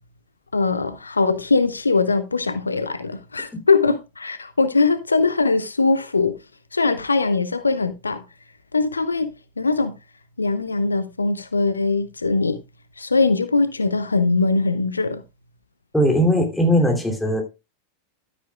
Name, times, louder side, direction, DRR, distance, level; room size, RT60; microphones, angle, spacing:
voice 1, 0.5-6.4 6.7-8.2 8.7-9.9 10.4-12.6 13.0-15.2, left 3 dB, 80° left, 0.8 m, -21 dB
voice 2, 15.9-17.4, equal, 5° left, 2.8 m, -19 dB
12.5 x 9.6 x 2.3 m
figure-of-eight pair, 90°, 0 cm